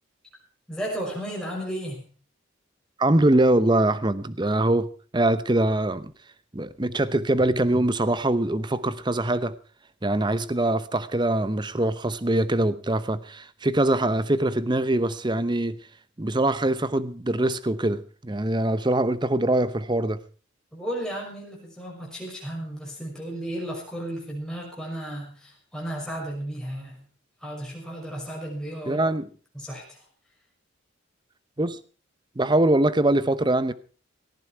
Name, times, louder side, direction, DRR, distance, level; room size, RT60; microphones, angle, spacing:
voice 1, 0.7-2.1 20.7-27.0 27.4-29.1 29.5-30.0, right 1 dB, 5° left, 6.1 m, -34 dB
voice 2, 3.0-6.1 6.5-9.5 10.0-15.8 16.2-20.2 28.9-29.3 31.6-31.8 32.4-33.7, right 1 dB, 20° right, 0.8 m, -23 dB
18.0 x 14.5 x 4.6 m
head